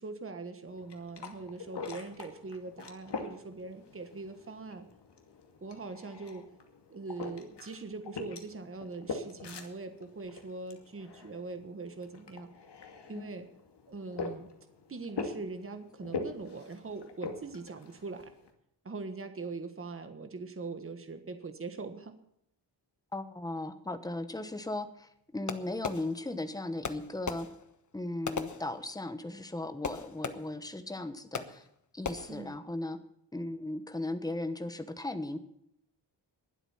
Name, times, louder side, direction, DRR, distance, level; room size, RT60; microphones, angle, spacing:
voice 1, 0.0-4.8 5.6-6.4 6.9-12.5 13.1-13.5 13.9-14.5 14.9-18.3 18.8-22.1 32.3-32.6, right 3 dB, 30° right, 8 dB, 1.4 m, -42 dB
sound 1, 0.7-18.5, left 4 dB, 65° left, 2.5 m, -44 dB
voice 2, 23.1-27.5 27.9-31.6 31.9-33.0 33.3-35.4, left 2 dB, 10° left, 9 dB, 1.1 m, -37 dB
Fireworks, 25.5-26.5 26.8-29.2 29.8-30.7 31.3-31.8 32.0-32.5, left 5 dB, 40° left, 1.2 m, -39 dB
21.5 x 8.1 x 5.7 m, 0.74 s
wide cardioid pair, 170°, 44 cm